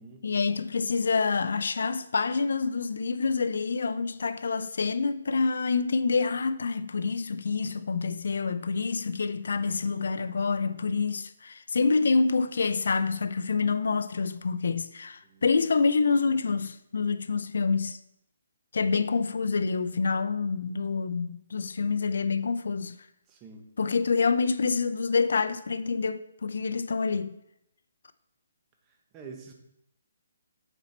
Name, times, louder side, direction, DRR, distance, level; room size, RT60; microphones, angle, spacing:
voice 1, 0.2-18.0 18.7-23.0 23.8-27.4, left 4 dB, 70° left, 0.5 m, -27 dB
voice 2, 15.2-15.7 23.3-23.7 28.9-29.5, right 4 dB, 20° right, 1.0 m, -47 dB
8.0 x 4.4 x 4.3 m
hypercardioid pair, 160°, 0 cm